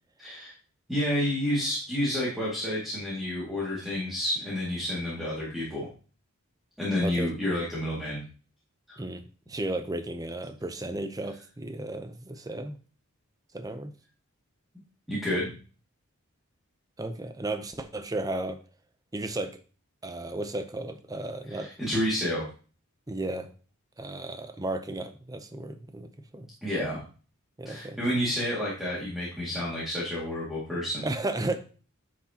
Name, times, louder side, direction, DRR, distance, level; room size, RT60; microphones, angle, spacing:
voice 1, 0.2-0.5 0.9-5.9 6.8-8.2 8.9-9.0 15.1-15.5 21.5-22.4 26.6-27.0 27.7-31.1, left 1 dB, ahead, -7 dB, 2.1 m, -30 dB
voice 2, 9.0-12.8 13.5-13.9 17.0-18.6 19.1-19.6 20.0-21.7 23.1-23.5 24.0-26.5 27.6-28.0 31.0-31.6, right 2 dB, 15° right, 9 dB, 0.6 m, -34 dB
10.0 x 6.1 x 2.9 m, 0.38 s
head